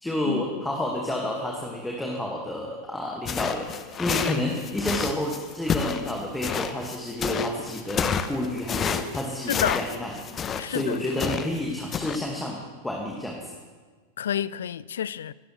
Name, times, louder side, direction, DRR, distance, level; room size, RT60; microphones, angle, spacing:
voice 1, 0.0-10.1 10.7-12.6 12.8-13.5, left 1 dB, 5° left, 1.8 m, -30 dB
sound 1, 3.2-11.6 11.9-12.2, left 7 dB, 25° left, 0.8 m, -30 dB
voice 2, 9.5-9.8 10.6-11.0 14.2-15.3, left 9 dB, 65° left, 0.3 m, -29 dB
26.0 x 12.0 x 3.2 m
figure-of-eight pair, 90°, 0 cm